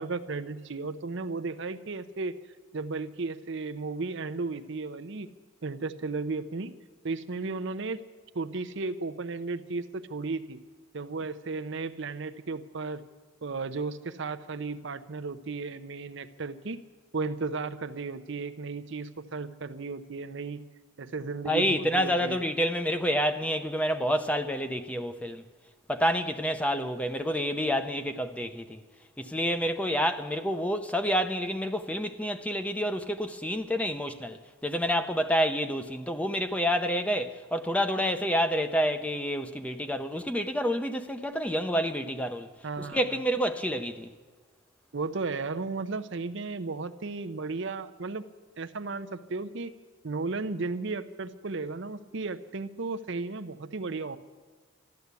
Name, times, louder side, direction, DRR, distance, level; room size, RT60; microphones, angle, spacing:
voice 1, 0.0-2.4 2.7-5.3 5.6-6.7 7.0-8.0 8.3-10.6 10.9-13.0 13.4-16.8 17.1-20.6 21.0-22.4 42.6-43.2 44.9-48.2 48.6-49.7 50.0-54.2, right 3 dB, 60° right, 0.7 m, -34 dB
voice 2, 21.4-25.4 25.9-28.8 29.2-42.5 42.8-44.1, equal, 5° left, 0.6 m, -28 dB
13.0 x 13.0 x 8.3 m
head